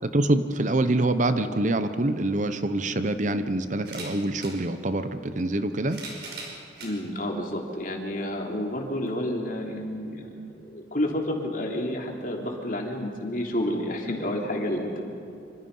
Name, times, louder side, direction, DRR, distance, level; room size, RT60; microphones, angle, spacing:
voice 1, 0.0-6.0, right 2 dB, 45° right, 10 dB, 0.9 m, -25 dB
sound 1, 3.8-4.6 5.6-6.9 7.7-7.8 9.1-9.2, right 3 dB, 65° right, 5.7 m, -40 dB
voice 2, 6.8-10.3 10.6-15.0, left 1 dB, 50° left, 1 dB, 3.4 m, -30 dB
26.5 x 25.5 x 5.6 m, 2.6 s
head